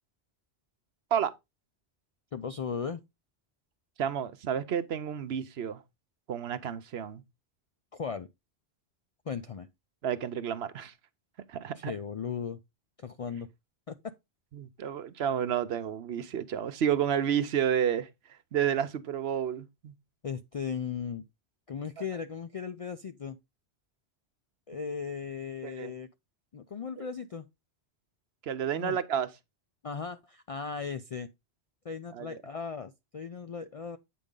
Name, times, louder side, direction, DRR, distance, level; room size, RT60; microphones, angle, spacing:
voice 1, 2.3-3.0 7.9-8.3 9.3-9.7 11.8-12.6 13.0-13.5 13.9-14.1 20.2-21.3 21.7-23.4 24.7-26.1 26.5-27.5 28.7-29.0 29.8-31.3 31.8-34.0, left 6 dB, 55° left, 0.4 m, -37 dB
voice 2, 4.0-5.8 6.3-7.2 10.0-10.9 11.5-11.9 14.5-19.9 25.6-25.9 27.0-27.1 28.4-29.3 32.1-32.4, right 8 dB, 70° right, 1.0 m, -31 dB
8.4 x 5.2 x 3.7 m
omnidirectional pair, 1.1 m